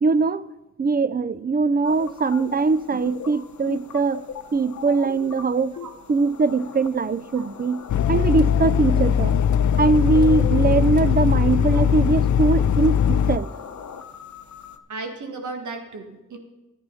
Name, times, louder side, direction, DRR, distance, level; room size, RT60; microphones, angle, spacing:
voice 1, 0.0-0.5 0.8-4.2 4.5-5.8 6.1-9.3 9.8-13.5, right 4 dB, 30° right, 0.4 m, -21 dB
sound 1, 1.8-14.8, left 7 dB, 70° left, 0.8 m, -38 dB
sound 2, 7.9-13.4, left 8 dB, 85° left, 0.4 m, -20 dB
voice 2, 14.9-16.4, right 3 dB, 85° right, 1.5 m, -35 dB
11.0 x 9.0 x 5.6 m
cardioid pair, 60°, 29 cm